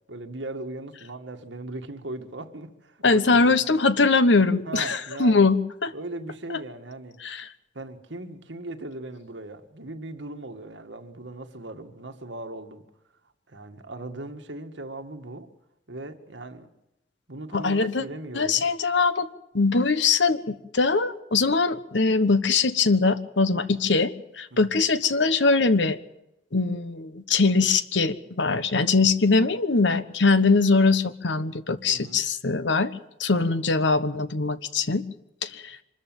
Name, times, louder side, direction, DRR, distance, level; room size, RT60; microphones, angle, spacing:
voice 1, 0.1-3.6 4.7-5.4 5.9-7.2 7.7-12.8 13.5-15.5 15.9-16.7 17.3-18.7 24.5-24.8 31.9-32.2, right 2 dB, 65° right, 6 dB, 1.9 m, -38 dB
voice 2, 3.0-5.9 6.5-6.6 7.2-7.5 17.5-18.0 18.3-19.3 19.5-26.0 26.5-32.9 33.2-35.0 35.4-35.8, left 4 dB, 65° left, 13 dB, 1.2 m, -22 dB
25.0 x 13.5 x 9.1 m, 0.88 s
head